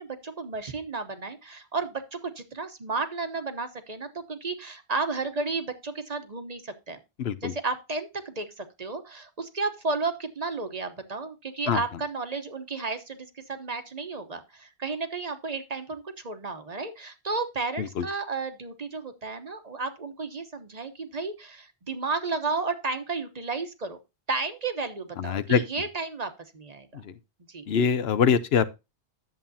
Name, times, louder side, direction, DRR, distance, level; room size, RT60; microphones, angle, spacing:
voice 1, 0.0-7.0 7.4-24.0 24.3-27.0 27.5-27.7, right 3 dB, 40° right, 1.0 m, -33 dB
voice 2, 7.2-7.5 11.7-11.8 17.8-18.1 25.2-25.6 26.9-27.1 27.7-28.7, left 7 dB, 85° left, 1.0 m, -24 dB
11.0 x 7.4 x 2.7 m
omnidirectional pair, 1.0 m